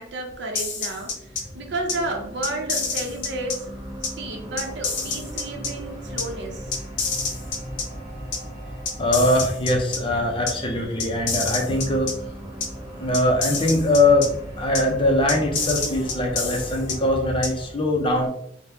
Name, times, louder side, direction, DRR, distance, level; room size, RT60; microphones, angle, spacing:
voice 1, 0.0-3.7 4.2-6.8, right 2 dB, 65° right, 2 dB, 0.6 m, -32 dB
sound 1, 0.5-1.4 1.9-2.0 2.4-3.6 4.0-4.1 4.6-5.7 6.2-6.3 6.7-7.8 8.3-8.4 8.9-10.0 10.5-10.6 11.0-12.1 12.6-12.7 13.1-14.3 14.7-14.8 15.3-16.9 17.4-17.5, left 5 dB, 70° left, 0.7 m, -27 dB
sound 2, 0.7-17.7, equal, 5° right, 1.2 m, -38 dB
voice 2, 9.0-12.1 13.0-18.3, left 1 dB, 30° left, 2 dB, 0.5 m, -22 dB
2.8 x 2.1 x 3.4 m, 0.73 s
head